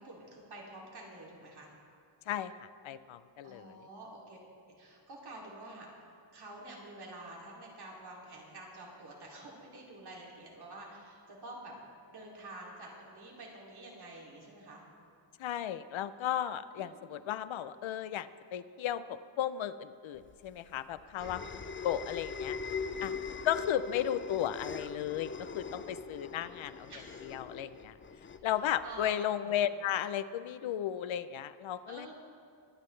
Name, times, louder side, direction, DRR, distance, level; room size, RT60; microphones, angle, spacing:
voice 1, 0.0-1.7 3.4-4.4 4.8-5.9 6.3-11.7 12.1-14.8 16.7-17.2 21.2-21.4 22.8-23.2 26.9-27.2 28.8-29.5 31.9-32.1, right 2 dB, 55° right, -3 dB, 2.8 m, -48 dB
voice 2, 2.3-3.9 15.4-21.4 21.8-22.6 23.0-23.1 23.4-26.9 27.2-28.0 28.4-32.1, left 10 dB, 85° left, 14 dB, 0.6 m, -35 dB
sound 1, 20.3-29.1, left 5 dB, 30° left, 0.3 m, -41 dB
23.0 x 9.7 x 3.2 m, 2.3 s
wide cardioid pair, 165°, 46 cm